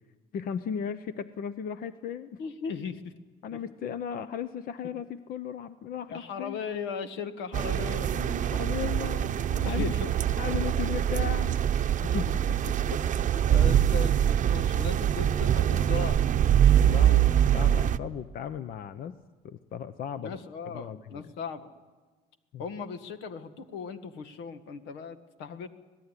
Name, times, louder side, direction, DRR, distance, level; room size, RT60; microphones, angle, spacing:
voice 1, 0.3-2.4 3.4-6.6 8.0-9.9 10.3-11.6 12.1-12.8 16.8-19.2 19.4-20.4 20.6-21.3 22.5-22.6, left 8 dB, 60° left, 12 dB, 0.9 m, -36 dB
voice 2, 2.4-3.1 3.5-3.6 6.1-8.1 9.6-10.1 12.9-13.0 13.3-16.2 20.2-21.7 22.6-25.7, left 6 dB, 90° left, 9 dB, 1.7 m, -37 dB
sound 1, 7.5-18.0, right 10 dB, 50° right, 0.7 m, -24 dB
26.0 x 18.0 x 9.9 m, 1.3 s
cardioid pair, 110°, 17 cm